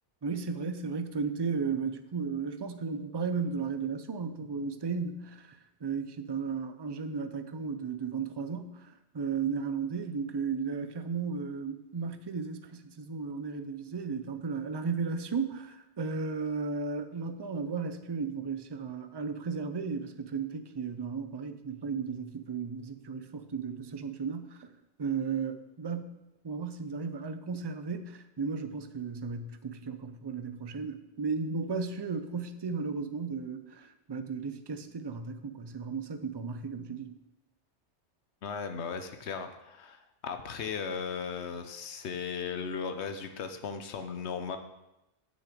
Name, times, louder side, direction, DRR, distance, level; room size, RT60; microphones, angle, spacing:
voice 1, 0.2-24.7 25.0-26.2 26.4-37.2, right 5 dB, 35° right, 10 dB, 0.4 m, -35 dB
voice 2, 38.4-44.6, left 6 dB, 75° left, 8 dB, 1.1 m, -37 dB
7.0 x 6.4 x 7.5 m, 0.93 s
omnidirectional pair, 1.2 m